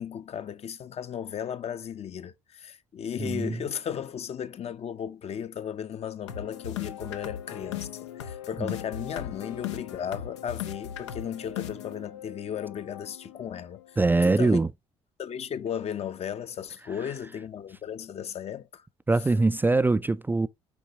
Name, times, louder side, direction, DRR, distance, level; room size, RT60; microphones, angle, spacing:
voice 1, 0.0-7.9 8.1-14.6 15.2-18.9, left 8 dB, 45° left, 0.7 m, -35 dB
voice 2, 3.2-3.6 8.6-8.7 14.0-14.7 19.1-20.5, right 3 dB, 15° right, 0.4 m, -23 dB
sound 1, 6.3-14.2, left 10 dB, 85° left, 0.6 m, -39 dB
7.0 x 4.5 x 3.0 m
hypercardioid pair, 55°, 15 cm